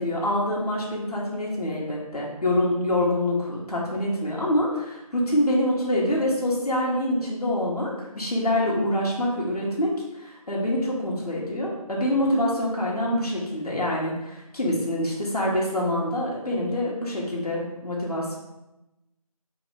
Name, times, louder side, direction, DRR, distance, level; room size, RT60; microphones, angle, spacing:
voice 1, 0.0-18.4, left 1 dB, 90° left, -4 dB, 1.6 m, -26 dB
3.5 x 3.1 x 4.8 m, 0.96 s
figure-of-eight pair, 170°, 19 cm